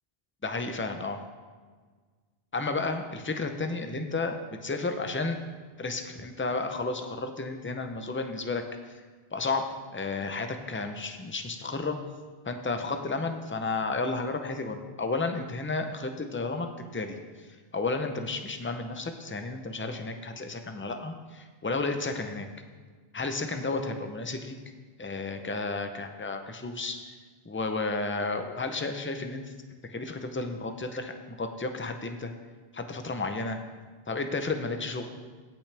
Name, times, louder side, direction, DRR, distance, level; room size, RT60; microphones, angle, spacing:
voice 1, 0.4-1.2 2.5-5.4 5.8-8.6 8.9-9.0 9.3-9.6 9.9-12.0 12.4-16.7 16.9-17.2 17.7-22.5 23.1-24.5 25.0-27.2 27.5-29.4 29.8-32.3 32.7-33.6 34.1-35.1, left 3 dB, 15° left, 6 dB, 0.5 m, -32 dB
16.5 x 6.1 x 3.4 m, 1.5 s
omnidirectional pair, 1.1 m